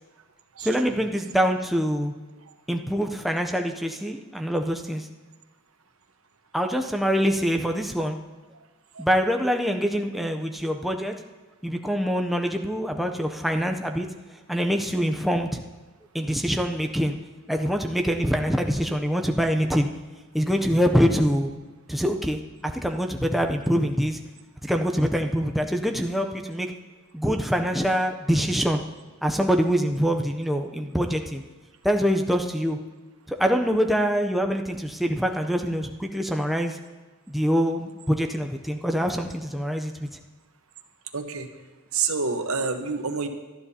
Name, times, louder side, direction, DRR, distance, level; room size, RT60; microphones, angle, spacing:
voice 1, 0.6-2.1 2.7-5.1 6.5-8.2 9.0-11.1 11.6-14.1 14.5-15.6 16.1-17.1 17.5-19.9 20.3-21.5 21.9-24.2 24.6-26.7 27.1-28.8 29.2-31.4 31.8-32.8 33.3-36.8 37.3-40.1, equal, ahead, 3 dB, 0.5 m, -24 dB
voice 2, 41.1-41.5 41.9-43.3, right 5 dB, 75° right, 6 dB, 1.1 m, -27 dB
18.5 x 12.5 x 2.8 m, 1.3 s
head